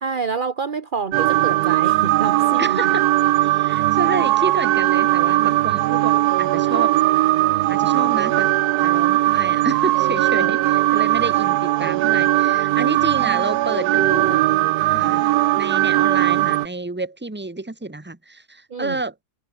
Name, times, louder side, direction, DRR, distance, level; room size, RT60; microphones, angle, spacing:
voice 1, 0.0-2.8 10.3-10.5 18.7-19.0, right 5 dB, 35° right, 1.0 m, -28 dB
sound 1, 1.1-16.7, right 16 dB, 80° right, 0.8 m, -19 dB
voice 2, 2.6-3.0 3.4-6.9 7.5-8.5 8.8-14.5 14.9-15.3 15.6-19.1, right 2 dB, 5° right, 1.5 m, -29 dB
omnidirectional pair, 2.1 m